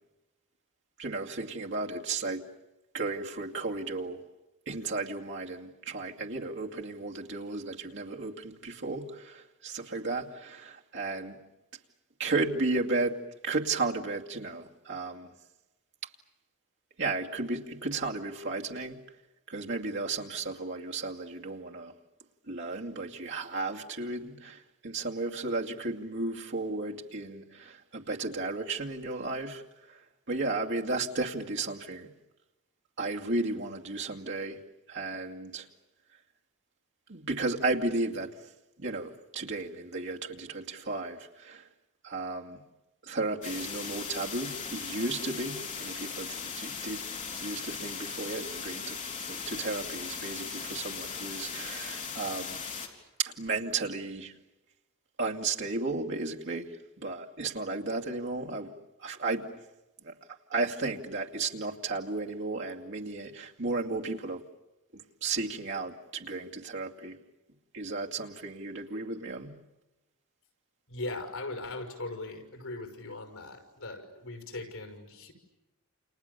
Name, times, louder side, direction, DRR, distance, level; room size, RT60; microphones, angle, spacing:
voice 1, 1.0-2.4 2.9-4.2 4.7-11.4 12.2-15.3 17.0-19.0 19.5-21.9 22.5-29.6 29.9-30.0 30.3-32.1 33.0-34.6 34.9-35.7 37.1-38.4 38.8-41.7 42.0-42.6 43.0-47.0 47.4-49.0 49.3-52.6 53.2-54.3 55.2-58.7 59.0-59.5 60.0-60.1 60.5-64.4 64.9-67.2 67.7-69.6, right 3 dB, 55° right, 2.4 m, -34 dB
sound 1, 43.4-52.9, left 6 dB, 35° left, 4.3 m, -38 dB
voice 2, 70.9-75.3, left 2 dB, 75° left, 6.0 m, -39 dB
29.5 x 28.5 x 6.9 m
head